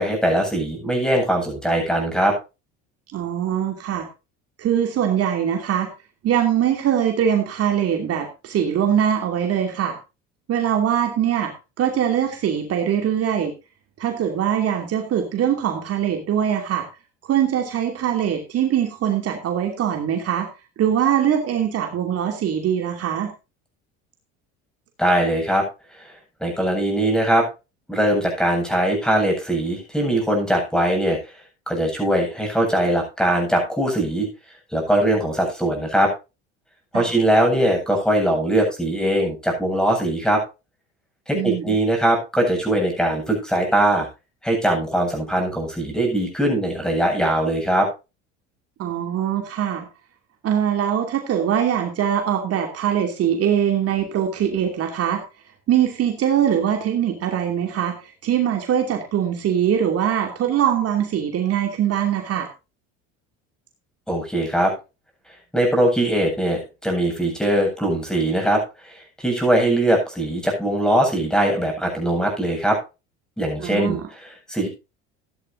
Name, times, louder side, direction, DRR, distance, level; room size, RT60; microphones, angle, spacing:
voice 1, 0.0-2.3 25.0-25.6 26.0-26.1 26.4-27.5 27.9-31.4 31.7-34.3 34.7-36.1 36.9-40.4 41.3-44.1 44.4-47.9 64.1-64.7 65.5-72.8 73.4-74.7, right 1 dB, ahead, 3 dB, 7.9 m, -21 dB
voice 2, 3.1-4.1 4.6-5.9 6.2-10.0 10.5-13.5 14.0-16.9 17.2-20.5 20.8-23.3 36.9-37.1 41.3-41.7 48.8-49.9 50.4-55.2 55.7-62.5 73.6-74.0, right 9 dB, 50° right, 3 dB, 2.8 m, -22 dB
16.0 x 11.0 x 2.7 m, 0.28 s
supercardioid pair, 95°, 31 cm